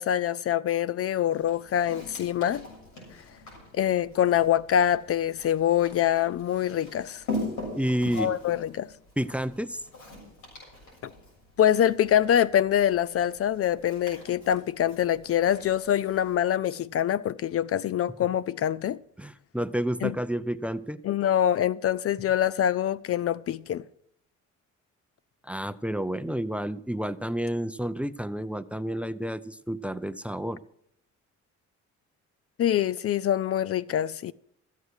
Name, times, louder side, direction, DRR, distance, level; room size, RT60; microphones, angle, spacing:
voice 1, 0.0-2.7 3.7-7.2 8.1-8.9 11.0-11.1 11.6-19.0 20.0-20.1 21.0-23.8 32.6-34.3, left 10 dB, 50° left, 0.4 m, -25 dB
Walk footsteps, 1.3-16.3, left 2 dB, 80° left, 7.1 m, -42 dB
voice 2, 7.7-8.3 9.2-9.8 19.2-21.0 25.4-30.6, equal, 5° right, 0.5 m, -30 dB
14.0 x 8.2 x 6.4 m
cardioid pair, 90°, 30 cm